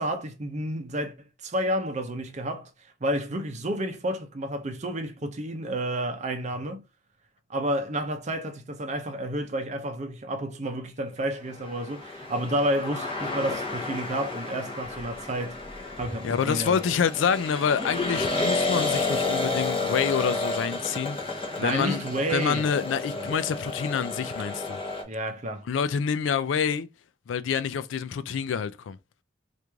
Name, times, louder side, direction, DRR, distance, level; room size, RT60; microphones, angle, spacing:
voice 1, 0.0-2.7 3.0-6.8 7.5-15.6 16.0-16.8 21.6-23.3 25.1-25.6, right 1 dB, 40° right, 0.6 m, -30 dB
sound 1, 11.6-25.0, left 2 dB, 30° left, 0.8 m, -31 dB
sound 2, 14.8-17.4 18.0-18.1, equal, 65° left, 1.1 m, -48 dB
voice 2, 16.2-22.0 22.3-24.8 25.7-26.9 27.3-29.0, left 7 dB, 80° left, 0.4 m, -27 dB
3.1 x 2.5 x 3.4 m
head